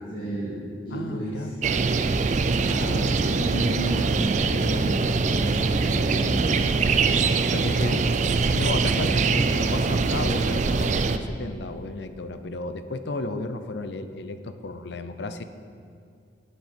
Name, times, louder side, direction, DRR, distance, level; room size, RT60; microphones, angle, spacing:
voice 1, 0.1-1.5 2.6-6.7, equal, 25° left, -12 dB, 2.3 m, -31 dB
voice 2, 0.9-1.5 7.4-8.1 8.5-15.4, left 2 dB, 70° left, 10 dB, 0.6 m, -33 dB
sound 1, 1.6-11.2, right 4 dB, 40° right, 0.3 m, -23 dB
9.1 x 7.5 x 5.2 m, 2.4 s
head